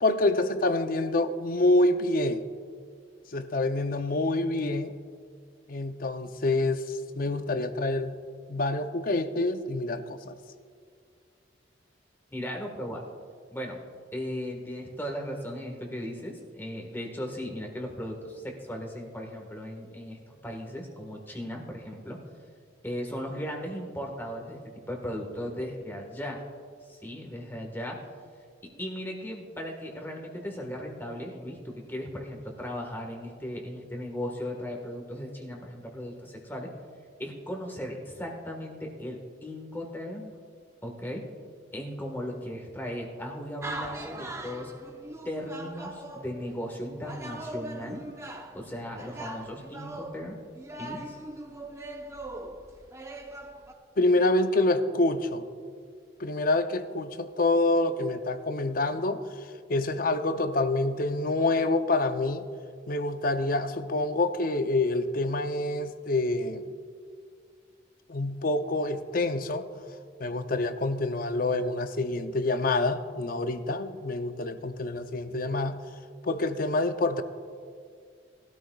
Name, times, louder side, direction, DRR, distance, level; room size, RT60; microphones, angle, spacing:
voice 1, 0.0-2.4 3.3-4.9 5.7-8.2 8.5-10.3 54.0-55.4 56.2-59.2 59.7-62.5 62.9-66.7 68.1-69.7 70.2-75.8 76.2-77.2, left 2 dB, 50° left, 9 dB, 0.6 m, -27 dB
voice 2, 12.3-13.0 13.5-13.8 14.1-20.2 20.4-22.2 22.8-24.6 24.9-26.4 26.9-28.0 28.8-36.7 37.2-40.3 40.8-41.2 41.7-44.7 45.2-48.0 48.5-50.4 50.8-51.2, equal, 10° left, 0 dB, 1.4 m, -37 dB
sound 1, 43.6-46.5 47.0-48.6 49.0-53.7, right 1 dB, 15° right, 0.7 m, -40 dB
20.0 x 13.0 x 2.3 m, 2.1 s
head